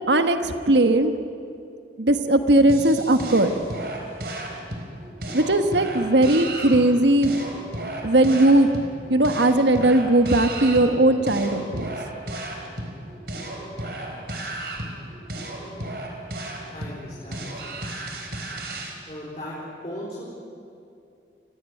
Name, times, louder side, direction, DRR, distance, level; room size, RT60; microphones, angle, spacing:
voice 1, 0.1-1.1 2.0-3.5 5.3-7.3 8.0-8.7 9.1-11.9, right 1 dB, 80° right, 8 dB, 1.4 m, -18 dB
sound 1, 2.7-18.9, right 1 dB, 55° right, 4.2 m, -34 dB
voice 2, 16.7-17.7 19.1-19.6 19.8-20.2, left 1 dB, 35° left, -5 dB, 4.4 m, -37 dB
28.5 x 18.0 x 9.4 m, 2.5 s
head